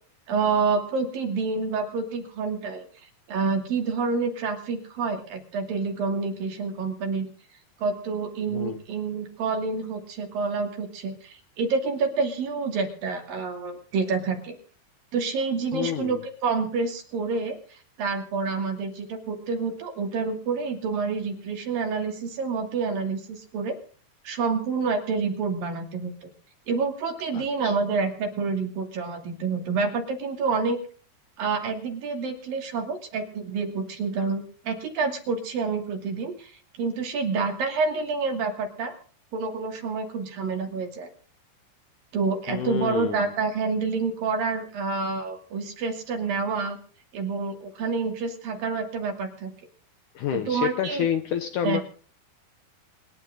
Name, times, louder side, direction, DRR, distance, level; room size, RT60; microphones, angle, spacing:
voice 1, 0.3-2.9 3.3-7.3 7.8-14.6 15.1-23.7 24.2-26.3 26.7-30.8 31.4-38.9 39.3-41.1 42.1-46.8 47.1-49.5 50.3-51.1 51.6-51.8, right 4 dB, 60° right, 4 dB, 4.2 m, -28 dB
voice 2, 15.7-16.2 27.3-27.7 42.5-43.2 50.2-51.8, left 9 dB, 70° left, 9 dB, 2.0 m, -28 dB
27.0 x 11.0 x 3.8 m, 0.42 s
omnidirectional pair, 4.6 m